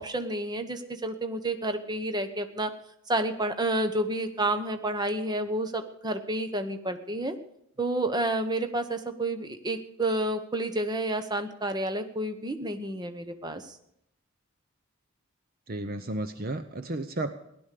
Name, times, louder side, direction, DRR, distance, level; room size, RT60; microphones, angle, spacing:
voice 1, 0.0-2.7 3.1-7.4 7.8-13.8, right 1 dB, 20° right, 8 dB, 1.0 m, -30 dB
voice 2, 15.7-17.3, right 2 dB, 40° right, 10 dB, 0.7 m, -33 dB
16.5 x 11.5 x 6.7 m, 0.76 s
head